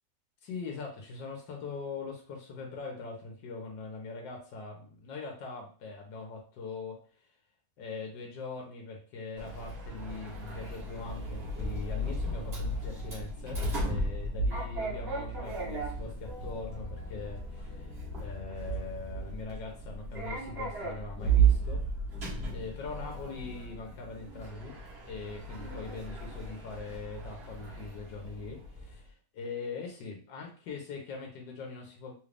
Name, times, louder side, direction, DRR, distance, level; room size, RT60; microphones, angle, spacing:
voice 1, 0.4-7.0 7.8-17.9 18.2-21.8 22.5-24.8 25.1-32.1, left 4 dB, 85° left, 0 dB, 1.5 m, -42 dB
Sliding door, 9.4-29.0, right 4 dB, 40° right, 1.3 m, -34 dB
3.6 x 2.5 x 3.3 m, 0.40 s
omnidirectional pair, 1.9 m